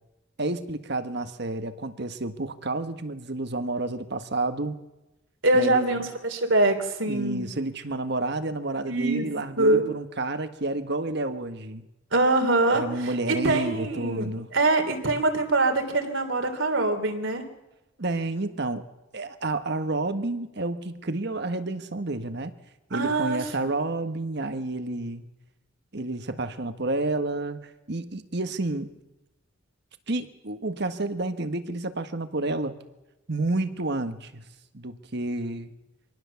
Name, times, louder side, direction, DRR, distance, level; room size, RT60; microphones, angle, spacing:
voice 1, 0.4-4.8 5.5-5.9 7.1-11.8 12.7-14.5 18.0-18.9 19.1-22.5 22.9-25.3 25.9-28.9 30.1-32.8 33.3-34.4 34.7-35.7, right 2 dB, 60° right, 9 dB, 1.5 m, -30 dB
voice 2, 5.4-7.5 8.9-9.3 9.6-9.8 12.1-12.8 13.3-17.5 22.9-23.4, right 2 dB, 75° right, 5 dB, 3.3 m, -23 dB
25.0 x 19.0 x 7.1 m, 0.99 s
head